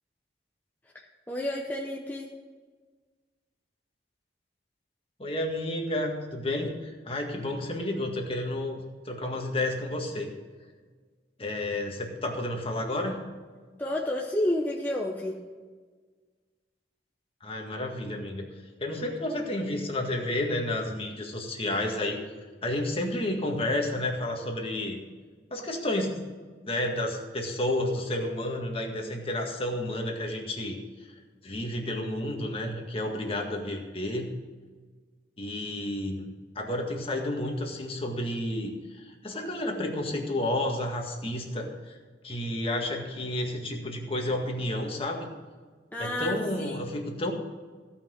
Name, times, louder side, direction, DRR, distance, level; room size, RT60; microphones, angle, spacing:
voice 1, 1.3-2.3 13.8-15.4 45.9-46.8, left 1 dB, 10° left, -3 dB, 0.9 m, -30 dB
voice 2, 5.2-10.3 11.4-13.2 17.4-18.5 18.8-22.2 22.6-25.0 25.5-26.2 26.7-30.8 31.4-34.3 35.4-36.3 36.6-42.0 42.2-45.3 46.0-47.3, left 1 dB, 35° left, 1 dB, 1.8 m, -31 dB
16.0 x 5.8 x 6.4 m, 1.5 s
head